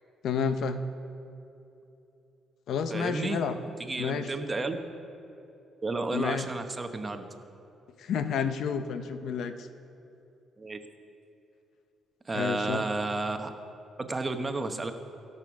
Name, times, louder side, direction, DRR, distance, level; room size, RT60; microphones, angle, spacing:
voice 1, 0.2-0.8 2.7-3.5 4.0-4.3 6.1-6.5 8.0-9.7 12.3-12.8, left 6 dB, 70° left, 10 dB, 0.7 m, -30 dB
voice 2, 2.9-3.4 3.8-4.7 5.8-7.2 10.6-10.8 12.3-13.5 14.0-14.9, right 3 dB, 25° right, 7 dB, 1.0 m, -32 dB
16.0 x 6.7 x 6.0 m, 2.8 s
cardioid pair, 90°, 0 cm